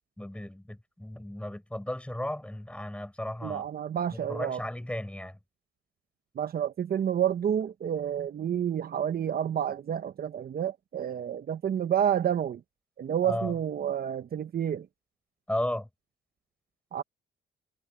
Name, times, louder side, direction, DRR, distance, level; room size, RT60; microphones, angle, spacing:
voice 1, 0.2-3.7 4.1-5.4 13.2-13.5 15.5-15.9, left 1 dB, 5° left, 5.8 m, -35 dB
voice 2, 3.4-4.6 6.3-12.6 13.0-14.9 16.9-17.0, right 9 dB, 50° right, 0.9 m, -29 dB
cardioid pair, 90°, 20 cm